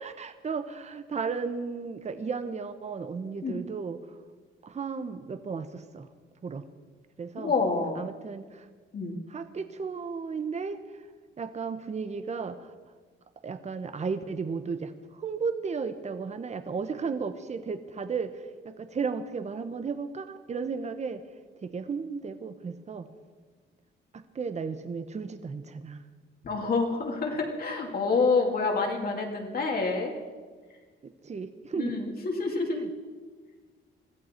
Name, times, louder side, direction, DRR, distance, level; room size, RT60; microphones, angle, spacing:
voice 1, 0.0-4.0 4.6-6.1 6.4-6.6 7.2-7.5 8.0-8.7 9.3-10.8 11.4-12.7 13.4-14.9 15.2-21.2 21.6-23.1 24.1-26.0 31.0-32.0 32.8-32.9, right 5 dB, 35° right, 10 dB, 1.0 m, -34 dB
voice 2, 7.3-8.0 8.9-9.2 26.4-30.1 31.8-32.9, left 4 dB, 50° left, 1 dB, 2.7 m, -27 dB
21.5 x 14.5 x 4.5 m, 1.5 s
cardioid pair, 90°, 20 cm